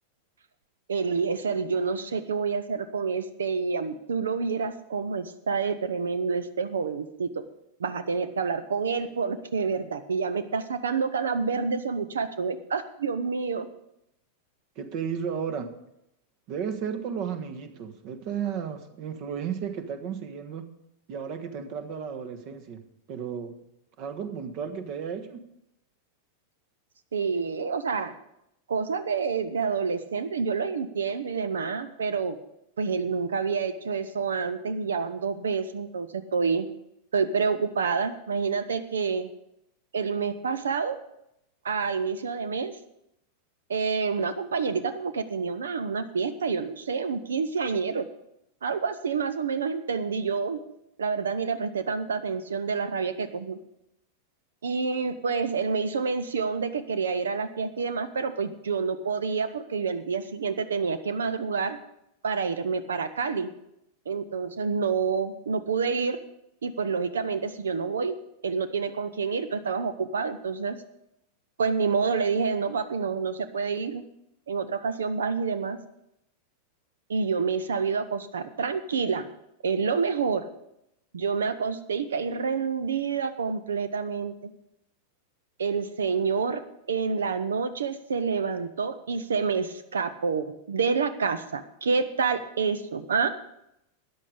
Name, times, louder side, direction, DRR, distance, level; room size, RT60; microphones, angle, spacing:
voice 1, 0.9-7.4 7.8-13.7 27.1-28.1 28.7-32.4 32.8-36.7 37.1-39.3 39.9-41.0 41.6-42.8 43.7-48.1 48.6-50.6 51.0-53.6 54.6-61.8 62.2-63.5 64.1-66.2 66.6-68.2 68.4-70.8 71.6-74.0 74.5-75.8 77.1-79.3 79.6-80.5 81.1-84.5 85.6-86.6 86.9-93.3, right 5 dB, 65° right, 12 dB, 0.7 m, -28 dB
voice 2, 14.7-15.7 16.5-20.7 21.1-23.6 24.0-25.5, right 7 dB, 45° right, 8 dB, 1.4 m, -34 dB
13.5 x 9.8 x 5.1 m, 0.81 s
figure-of-eight pair, 90°, 0 cm